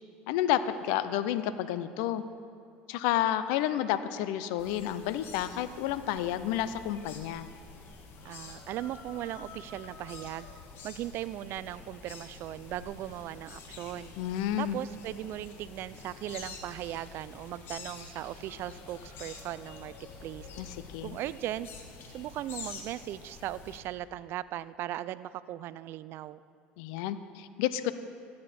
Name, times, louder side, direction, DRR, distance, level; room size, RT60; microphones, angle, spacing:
voice 1, 0.3-2.2 2.9-7.5 14.2-14.8 20.6-20.7 20.9-21.2 26.8-27.9, left 12 dB, 75° left, 13 dB, 0.5 m, -30 dB
sound 1, 4.6-23.8, left 4 dB, 60° left, 1.5 m, -48 dB
voice 2, 8.2-10.5 10.8-14.1 14.6-19.9 20.2-20.5 21.0-21.7 22.1-26.4, right 13 dB, 60° right, 17 dB, 0.4 m, -38 dB
16.5 x 8.6 x 4.3 m, 2.4 s
supercardioid pair, 85°, 4 cm